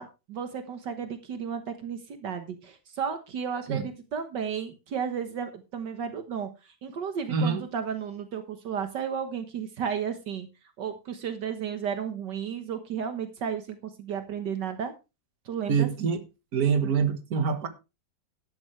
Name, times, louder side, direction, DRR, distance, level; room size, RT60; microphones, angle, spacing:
voice 1, 0.0-10.5 10.8-14.9 15.5-15.9, right 7 dB, 75° right, 1.9 m, -33 dB
voice 2, 7.3-7.6 15.7-16.2 16.5-17.7, right 6 dB, 55° right, 2.0 m, -25 dB
12.5 x 11.5 x 3.2 m
omnidirectional pair, 1.9 m